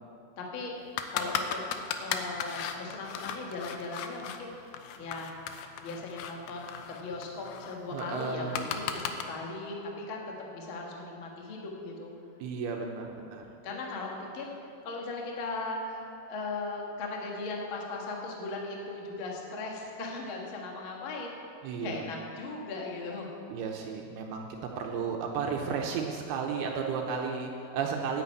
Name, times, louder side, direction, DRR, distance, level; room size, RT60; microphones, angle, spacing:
voice 1, 0.4-0.7 1.1-1.6 2.0-5.3 5.8-12.1 13.6-21.3 21.8-23.3, left 3 dB, 55° left, -1 dB, 1.4 m, -38 dB
sound 1, 1.0-4.4 4.7-9.2, left 9 dB, 80° left, 2.4 m, -36 dB
voice 2, 7.9-8.7 12.4-13.5 21.6-22.1 23.5-28.2, right 5 dB, 80° right, 1 dB, 2.7 m, -33 dB
9.9 x 9.4 x 8.4 m, 2.6 s
omnidirectional pair, 4.7 m